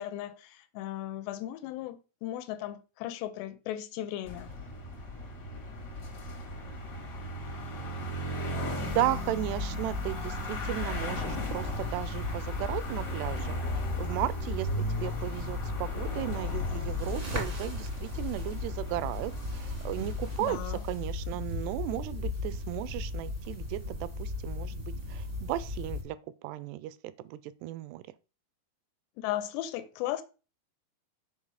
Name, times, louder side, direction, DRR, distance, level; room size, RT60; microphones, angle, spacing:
voice 1, 0.0-4.5 20.4-20.8 29.2-30.2, left 13 dB, 90° left, 2.9 m, -36 dB
sound 1, 4.2-20.5, left 1 dB, 55° left, 1.1 m, -37 dB
voice 2, 8.8-26.2 26.4-27.0 27.3-28.0, right 15 dB, 85° right, 2.6 m, -35 dB
sound 2, 8.9-26.0, left 2 dB, 40° right, 0.7 m, -36 dB
7.2 x 5.4 x 4.8 m
omnidirectional pair, 4.8 m